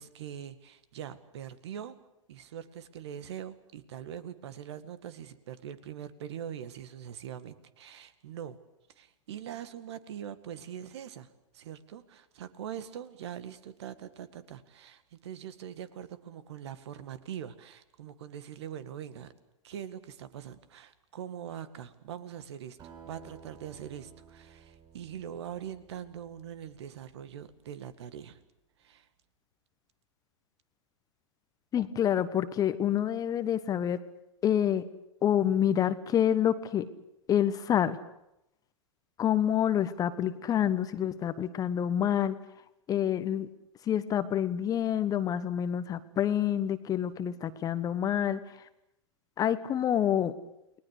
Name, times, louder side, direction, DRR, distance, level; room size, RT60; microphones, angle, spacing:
voice 1, 0.0-2.0 2.3-8.6 9.0-11.3 11.5-19.3 19.6-22.8 23.1-28.4 28.8-29.1, right 9 dB, 55° right, 12 dB, 1.9 m, -42 dB
Acoustic guitar, 22.8-27.6, right 6 dB, 30° right, 7.6 m, -55 dB
voice 2, 31.7-34.0 34.4-34.8 35.2-36.9 37.3-38.0 39.2-42.3 42.9-43.5 43.8-48.7 49.4-50.3, left 10 dB, 20° left, 13 dB, 1.2 m, -27 dB
29.5 x 20.5 x 6.6 m, 0.86 s
figure-of-eight pair, 110°, 17 cm